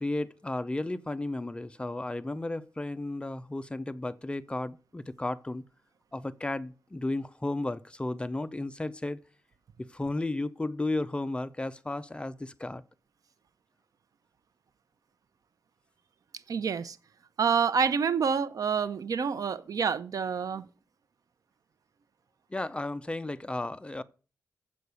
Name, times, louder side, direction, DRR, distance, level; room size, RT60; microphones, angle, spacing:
voice 1, 0.0-5.6 6.1-9.2 9.8-12.8 22.5-24.0, left 2 dB, 15° left, 0.5 m, -33 dB
voice 2, 16.5-17.0 17.4-20.7, right 6 dB, 65° right, 0.7 m, -27 dB
7.7 x 6.3 x 6.9 m
wide cardioid pair, 100°, 6 cm